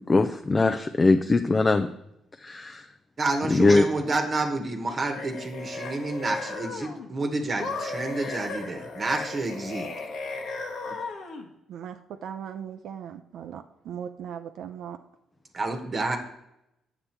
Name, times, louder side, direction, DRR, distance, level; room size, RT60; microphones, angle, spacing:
voice 1, 0.1-1.9 2.4-2.8 3.5-3.9 8.2-8.3, left 3 dB, 25° left, 8 dB, 0.4 m, -21 dB
voice 2, 3.2-9.9 10.9-11.0 15.5-16.2, right 2 dB, 40° right, 4 dB, 1.1 m, -29 dB
sound 1, 4.9-7.1 7.6-11.5, left 3 dB, 70° left, 1.3 m, -36 dB
voice 3, 11.7-15.0, right 8 dB, 75° right, 7 dB, 0.4 m, -38 dB
8.0 x 6.9 x 4.4 m, 0.85 s
cardioid pair, 90°, 0 cm